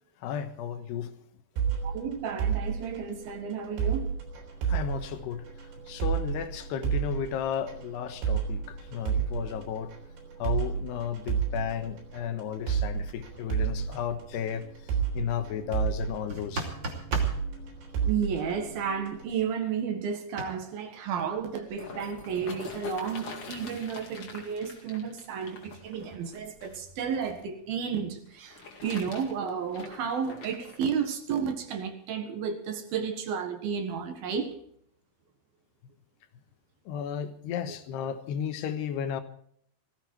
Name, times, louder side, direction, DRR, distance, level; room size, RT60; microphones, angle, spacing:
voice 1, 0.2-1.1 4.6-5.4 5.9-9.9 10.4-14.7 15.1-16.7 36.9-39.2, left 8 dB, 75° left, 3.2 m, -34 dB
sound 1, 1.6-19.3, right 7 dB, 85° right, 6.0 m, -32 dB
voice 2, 1.8-4.1 18.0-34.5, right 7 dB, 65° right, 3.2 m, -32 dB
sound 2, 16.3-17.4 20.4-20.5, right 2 dB, 30° right, 2.8 m, -33 dB
sound 3, 21.3-27.4 28.3-30.8 31.5-31.6, left 4 dB, 40° left, 2.7 m, -45 dB
18.0 x 15.5 x 4.7 m
omnidirectional pair, 5.0 m